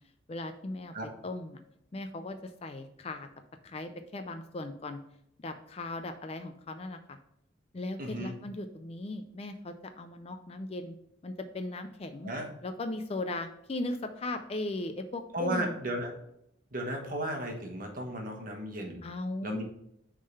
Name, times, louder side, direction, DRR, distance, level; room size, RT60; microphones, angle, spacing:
voice 1, 0.3-0.9 1.2-1.6 1.9-3.3 3.6-5.0 5.4-7.2 7.7-11.0 11.2-12.3 12.6-15.7 19.0-19.6, left 2 dB, 30° left, 8 dB, 0.4 m, -37 dB
voice 2, 8.0-8.3 12.2-12.5 15.3-16.1 16.7-19.0 19.4-19.6, right 1 dB, 45° right, 1 dB, 1.2 m, -34 dB
6.5 x 3.7 x 5.5 m, 0.75 s
head